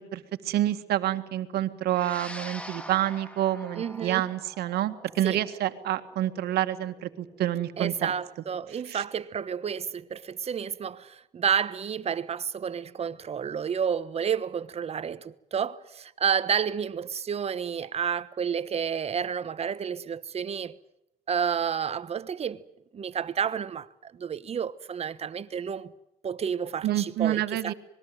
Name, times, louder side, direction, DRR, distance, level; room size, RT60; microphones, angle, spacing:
voice 1, 0.0-8.1 8.9-9.0 26.8-27.7, right 13 dB, 70° right, 1.9 m, -28 dB
sound 1, 1.9-10.5, equal, 5° left, 2.2 m, -46 dB
voice 2, 3.7-4.2 5.2-5.4 7.8-20.8 21.3-22.6 22.9-25.9 26.2-27.7, right 7 dB, 35° right, 1.1 m, -30 dB
26.0 x 21.0 x 7.8 m
cardioid pair, 110°, 17 cm